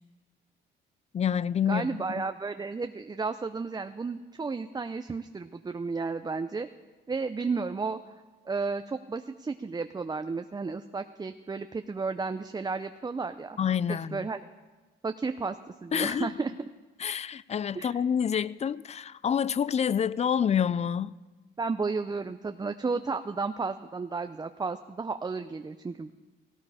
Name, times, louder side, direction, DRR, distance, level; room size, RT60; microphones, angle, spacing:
voice 1, 1.1-2.0 13.6-14.3 15.9-16.4 17.0-21.2, left 8 dB, 35° left, 0.4 m, -28 dB
voice 2, 1.7-6.7 7.1-8.0 8.5-13.6 13.9-14.4 15.0-16.5 17.7-18.0 21.6-26.1, right 4 dB, 20° right, 0.5 m, -33 dB
17.5 x 16.5 x 4.9 m
cardioid pair, 90°, 20 cm